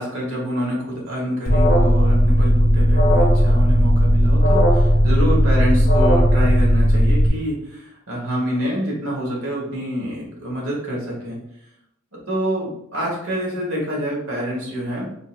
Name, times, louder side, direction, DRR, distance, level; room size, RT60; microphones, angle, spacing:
voice 1, 0.0-11.4 12.1-15.1, equal, 80° right, -4 dB, 1.3 m, -26 dB
Alarm, 1.4-7.3, equal, 70° left, 0.7 m, -15 dB
3.8 x 2.6 x 2.3 m, 0.75 s
head